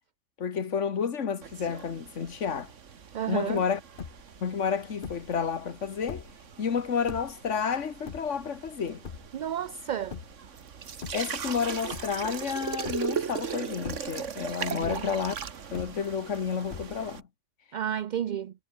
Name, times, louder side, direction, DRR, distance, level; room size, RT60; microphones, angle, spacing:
voice 1, 0.4-2.7 3.3-3.8 4.4-6.2 6.6-9.0 11.1-15.4 15.7-17.2, left 6 dB, 80° left, 1.7 m, -30 dB
sound 1, 1.4-17.2, right 7 dB, 85° right, 1.7 m, -39 dB
voice 2, 3.1-3.6 9.3-10.2 14.7-15.1 17.7-18.5, right 9 dB, 55° right, 0.5 m, -32 dB
sound 2, 4.0-4.4 5.0-5.4 5.9-6.5 7.1-7.5 8.1-8.6 9.0-9.5 10.1-10.5 10.9-11.6 11.9-12.4 12.8-13.4 13.8-14.4 14.8-15.3 15.7-16.3 16.7-17.2, left 6 dB, 50° left, 1.2 m, -41 dB
omnidirectional pair, 1.2 m